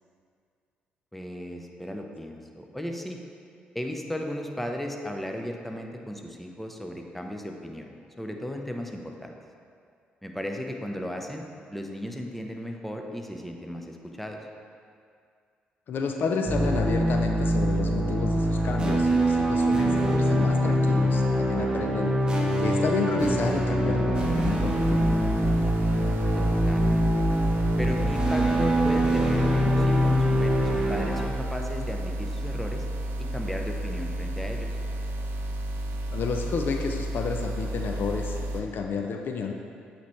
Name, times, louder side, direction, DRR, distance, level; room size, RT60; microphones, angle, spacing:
voice 1, 1.1-3.2 3.7-7.9 8.2-9.3 10.2-11.4 11.7-14.4 26.4-27.1 27.8-32.8 33.2-34.7, left 1 dB, 5° left, 3 dB, 0.7 m, -35 dB
voice 2, 15.9-22.1 22.6-25.0 36.1-39.5, left 5 dB, 60° left, 4 dB, 0.4 m, -31 dB
sound 1, 16.5-31.2, equal, 20° right, 1.1 m, -24 dB
sound 2, 24.1-38.6, right 1 dB, 65° right, 0.5 m, -32 dB
8.0 x 4.3 x 3.1 m, 2.3 s
supercardioid pair, 55°, 4 cm